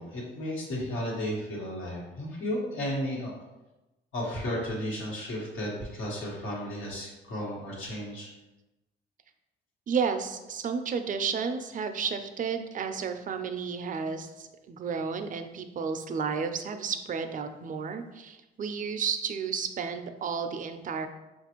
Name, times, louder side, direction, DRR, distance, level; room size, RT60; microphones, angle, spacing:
voice 1, 0.0-3.3 4.1-8.3, equal, 85° left, -4 dB, 1.3 m, -33 dB
voice 2, 9.9-21.1, right 6 dB, 40° right, 8 dB, 0.4 m, -32 dB
5.2 x 2.5 x 2.9 m, 1.0 s
cardioid pair, 90°, 20 cm